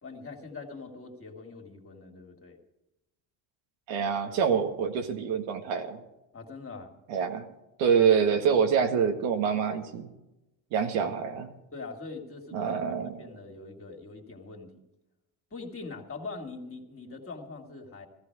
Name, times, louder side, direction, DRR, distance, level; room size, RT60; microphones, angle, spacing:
voice 1, 0.0-2.6 6.3-6.9 11.7-14.7 15.5-18.1, left 3 dB, 30° left, 2 dB, 2.6 m, -43 dB
voice 2, 3.9-6.0 7.1-7.5 7.8-10.1 10.7-11.5 12.5-13.2, right 7 dB, 85° right, 5 dB, 1.9 m, -26 dB
15.0 x 14.5 x 4.8 m, 0.94 s
supercardioid pair, 95°, 46 cm